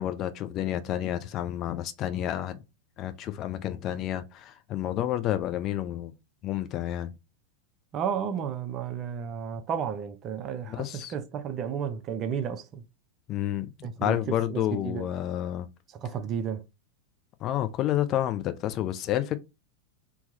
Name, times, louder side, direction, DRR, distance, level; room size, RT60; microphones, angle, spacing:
voice 1, 0.0-2.6 3.0-6.1 6.4-7.1 10.7-11.1 13.3-15.7 17.4-19.4, left 12 dB, 35° left, 0.5 m, -30 dB
voice 2, 7.9-12.8 13.8-15.1 16.0-16.6, right 7 dB, 30° right, 0.6 m, -32 dB
3.7 x 2.9 x 4.0 m
figure-of-eight pair, 90°, 0 cm